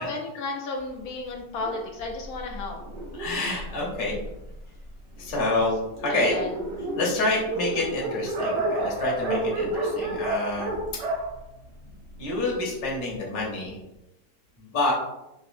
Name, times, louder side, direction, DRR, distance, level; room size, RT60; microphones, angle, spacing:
voice 1, 0.0-2.8 6.1-6.6, left 3 dB, 70° left, 0 dB, 0.9 m, -33 dB
Dog, 1.6-4.6 5.3-5.4 5.7-5.8 6.0-12.4, right 2 dB, 85° right, 1.3 m, -31 dB
voice 2, 3.2-4.2 5.2-6.4 7.0-10.7 12.2-13.8 14.6-14.9, left 2 dB, 40° left, -4 dB, 0.9 m, -27 dB
3.9 x 2.6 x 2.5 m, 0.91 s
omnidirectional pair, 1.8 m